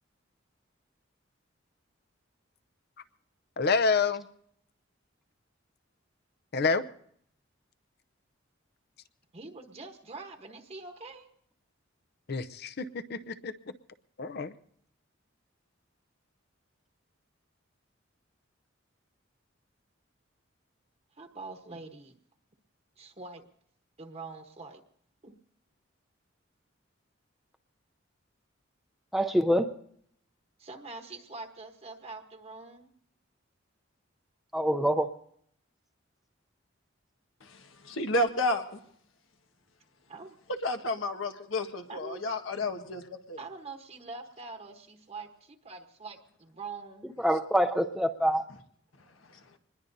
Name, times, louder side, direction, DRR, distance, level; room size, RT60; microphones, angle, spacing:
voice 1, 3.6-4.3 6.5-6.8 12.3-13.5 14.2-14.5, left 4 dB, 55° left, 11 dB, 0.6 m, -28 dB
voice 2, 9.3-11.3 21.2-22.1 23.0-23.4 24.0-24.8 25.2-25.4 30.6-32.9 40.1-40.4 41.9-42.2 43.4-47.2, right 3 dB, 35° right, 3 dB, 1.1 m, -44 dB
voice 3, 29.1-29.7 34.5-35.1 47.2-48.4, equal, ahead, 4 dB, 0.6 m, -25 dB
voice 4, 37.4-38.8 40.6-43.4 49.3-49.4, left 1 dB, 80° left, 6 dB, 1.4 m, -31 dB
25.5 x 20.5 x 2.7 m, 0.66 s
head